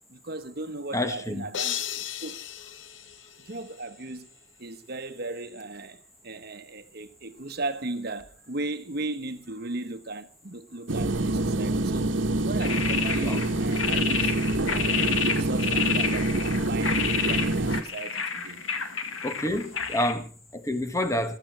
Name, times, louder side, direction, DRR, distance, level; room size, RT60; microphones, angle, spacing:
voice 1, 0.0-2.7 3.4-4.3 4.6-12.2 12.4-14.4 14.7-17.0 17.3-18.8, right 2 dB, 50° right, 1.2 m, -37 dB
voice 2, 0.9-1.4 13.2-13.4 19.2-21.4, left 1 dB, 15° left, 1.3 m, -28 dB
sound 1, 1.5-3.9, left 11 dB, 70° left, 0.9 m, -35 dB
sound 2, 10.9-17.8, right 2 dB, 70° right, 1.3 m, -26 dB
sound 3, 12.6-20.1, left 6 dB, 90° left, 2.0 m, -30 dB
16.0 x 13.0 x 6.1 m
head